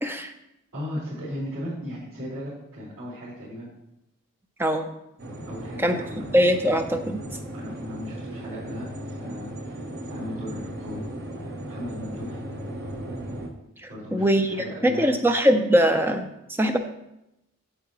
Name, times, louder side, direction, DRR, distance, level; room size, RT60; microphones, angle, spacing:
voice 1, 0.0-0.3 4.6-4.9 5.8-6.0 6.3-7.2 13.8-16.8, equal, 10° right, 6 dB, 0.4 m, -22 dB
voice 2, 0.7-3.7 5.5-6.3 7.5-11.1 11.7-12.4 13.9-15.1, left 1 dB, 85° right, -14 dB, 3.4 m, -36 dB
sound 1, 5.2-13.5, right 1 dB, 45° right, 0.9 m, -36 dB
8.4 x 7.9 x 3.0 m, 0.87 s
head